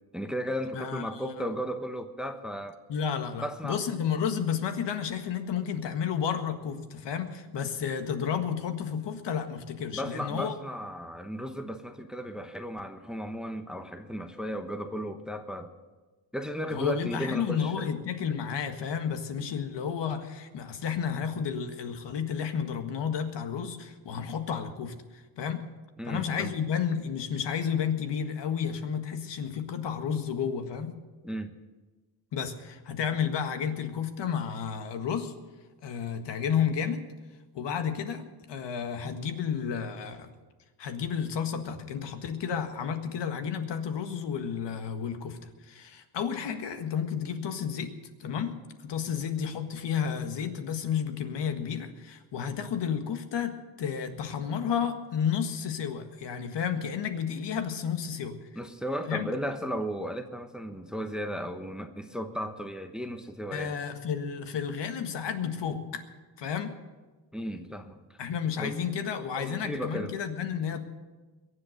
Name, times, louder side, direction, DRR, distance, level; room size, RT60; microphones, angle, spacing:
voice 1, 0.1-2.8 3.4-3.8 9.9-15.7 16.3-17.8 26.0-26.5 31.2-31.5 58.6-63.7 67.3-68.2 68.5-68.7 69.4-70.1, equal, ahead, 7 dB, 1.0 m, -35 dB
voice 2, 0.7-1.5 2.9-10.5 16.7-25.6 26.1-30.9 32.3-35.3 35.8-37.0 37.5-40.3 40.8-45.4 45.6-47.9 48.2-48.5 48.8-58.4 59.1-59.3 63.5-66.0 66.4-66.7 68.2-70.8, left 7 dB, 60° left, 7 dB, 1.7 m, -31 dB
22.0 x 8.0 x 6.7 m, 1.3 s
cardioid pair, 100°, 48 cm